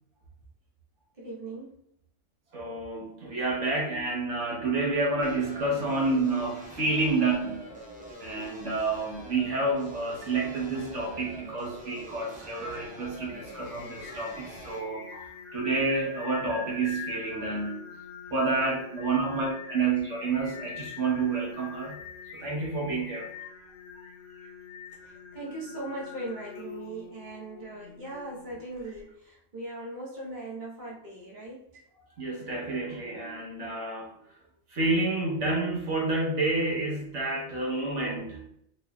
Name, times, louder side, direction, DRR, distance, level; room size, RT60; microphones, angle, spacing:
voice 1, 1.2-1.8 25.0-31.8, right 2 dB, 40° right, -5 dB, 1.0 m, -39 dB
voice 2, 2.5-7.7 8.2-17.8 18.3-22.0 22.4-23.3 23.6-23.7 32.2-34.1 34.7-38.6, right 3 dB, 75° right, -3 dB, 1.3 m, -29 dB
sound 1, 5.2-14.8, equal, 15° right, 0.3 m, -45 dB
Singing, 12.8-29.0, left 7 dB, 65° left, 0.8 m, -46 dB
4.2 x 3.0 x 2.2 m, 0.71 s
omnidirectional pair, 1.2 m